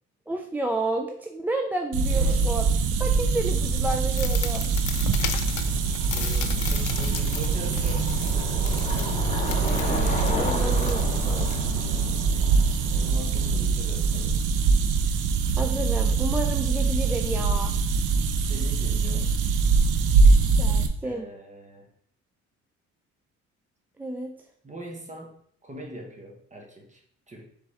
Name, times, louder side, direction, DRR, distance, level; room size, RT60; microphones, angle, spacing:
voice 1, 0.3-2.7 3.0-4.6 9.6-11.5 15.5-17.7 20.6-21.3 24.0-24.3, right 2 dB, 5° right, 2 dB, 0.3 m, -31 dB
sound 1, 1.9-20.9, right 4 dB, 85° right, 0.5 m, -23 dB
voice 2, 2.1-2.5 5.7-9.0 12.9-14.5 18.3-19.4 21.0-21.9 24.6-25.3 25.6-27.5, right 1 dB, 25° right, 1 dB, 1.1 m, -41 dB
Bicycle, 3.5-14.4, left 2 dB, 25° left, 0.8 m, -35 dB
sound 2, 4.0-12.1, left 10 dB, 80° left, 0.5 m, -37 dB
4.0 x 3.3 x 3.4 m, 0.64 s
cardioid pair, 90°, 30 cm